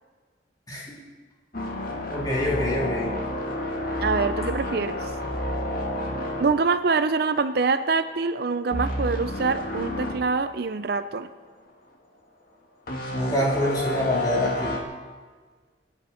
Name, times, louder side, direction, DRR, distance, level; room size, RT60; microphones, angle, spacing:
sound 1, 1.5-7.6 7.9-8.2 8.7-10.2 10.7-10.8 12.9-14.8, left 1 dB, 50° left, 2.2 m, -30 dB
voice 1, 2.1-3.1 13.1-14.8, equal, 20° left, -5 dB, 3.6 m, -26 dB
voice 2, 4.0-5.1 6.4-11.3, right 4 dB, 55° right, 11 dB, 0.5 m, -25 dB
25.5 x 9.6 x 4.4 m, 1.5 s
head